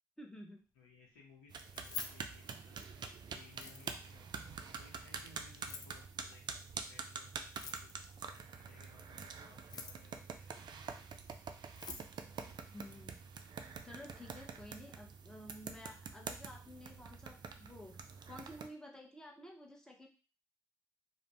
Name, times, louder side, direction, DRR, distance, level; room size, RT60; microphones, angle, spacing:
voice 1, 0.2-0.6 12.4-13.2 13.8-18.0 18.3-20.1, left 1 dB, 5° left, 1 dB, 0.9 m, -52 dB
voice 2, 0.7-10.5, left 4 dB, 90° left, -2 dB, 0.7 m, -62 dB
sound 1, 1.5-18.7, right 5 dB, 55° right, 0.4 m, -47 dB
Keys jangling, 1.6-3.0 3.5-4.1 5.5-6.0 7.5-8.1 9.5-10.2 11.3-11.4 11.6-12.1, left 5 dB, 50° left, 0.5 m, -47 dB
2.5 x 2.1 x 3.3 m, 0.34 s
hypercardioid pair, 40°, 9 cm